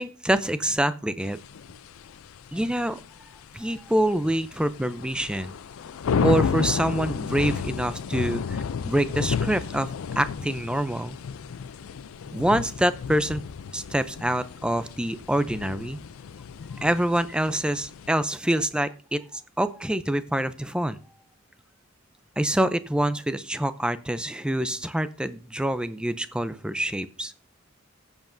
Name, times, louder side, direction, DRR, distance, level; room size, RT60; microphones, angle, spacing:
voice 1, 0.0-1.4 2.5-3.0 3.5-5.5 6.2-11.2 12.3-13.4 13.7-16.0 16.7-21.0 22.4-27.3, right 1 dB, 5° right, 12 dB, 0.4 m, -26 dB
sound 1, 1.2-18.1, left 6 dB, 85° left, 0.4 m, -32 dB
18.5 x 7.2 x 2.6 m, 0.41 s
head